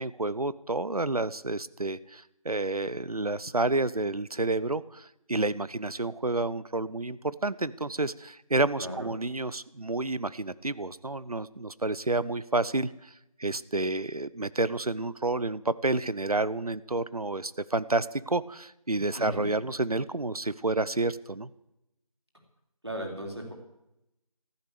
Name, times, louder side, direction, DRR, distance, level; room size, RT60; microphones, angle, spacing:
voice 1, 0.0-13.1 13.4-21.5, right 2 dB, 75° right, 18 dB, 0.8 m, -30 dB
voice 2, 19.2-19.5 22.8-23.5, right 1 dB, 45° right, 1 dB, 3.6 m, -36 dB
14.5 x 11.5 x 6.9 m, 0.86 s
figure-of-eight pair, 180°, 19 cm